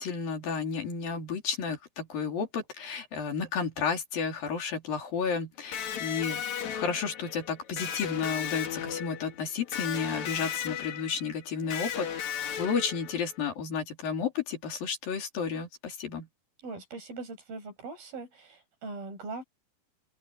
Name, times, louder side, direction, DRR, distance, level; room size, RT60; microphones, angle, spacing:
voice 1, 0.0-12.1 12.6-16.3, left 6 dB, 70° left, 5.3 m, -32 dB
Electric guitar, 5.7-13.4, left 9 dB, 55° left, 2.9 m, -36 dB
voice 2, 16.6-19.4, right 3 dB, 75° right, 9.2 m, -41 dB
omnidirectional pair, 4.2 m